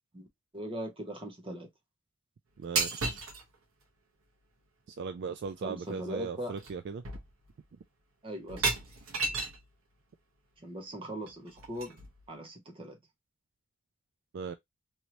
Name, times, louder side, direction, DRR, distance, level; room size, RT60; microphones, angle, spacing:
voice 1, 0.5-1.7 5.6-6.5 8.2-8.7 10.6-12.0 12.3-13.0, right 1 dB, 25° right, 1.0 m, -40 dB
voice 2, 2.6-3.3 4.9-7.0 14.3-14.5, right 5 dB, 55° right, 0.3 m, -38 dB
sound 1, 2.8-3.4 5.4-5.5 5.9-6.2 6.6-6.8 7.0-7.6 8.5-9.7 11.3-12.3, right 4 dB, 85° right, 1.1 m, -33 dB
3.1 x 2.7 x 2.9 m
head